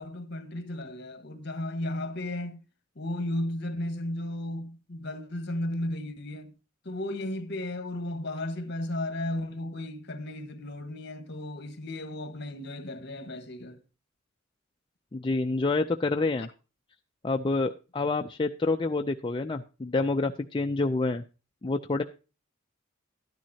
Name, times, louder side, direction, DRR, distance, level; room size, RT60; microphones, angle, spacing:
voice 1, 0.0-2.6 2.9-6.5 6.8-13.8, left 1 dB, 55° left, 1.4 m, -34 dB
voice 2, 15.1-16.5 17.2-21.2 21.6-22.0, left 3 dB, 25° left, 0.4 m, -28 dB
12.5 x 10.5 x 2.8 m
head